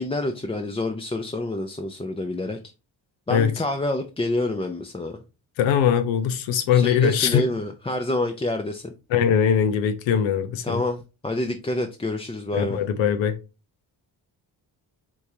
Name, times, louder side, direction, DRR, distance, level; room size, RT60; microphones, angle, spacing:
voice 1, 0.0-2.6 3.3-5.2 6.7-8.9 10.6-12.8, left 2 dB, 15° left, 0.5 m, -27 dB
voice 2, 5.6-7.4 9.1-10.8 12.5-13.4, left 8 dB, 90° left, 0.7 m, -21 dB
4.6 x 3.5 x 2.7 m
supercardioid pair, 60°, 44 cm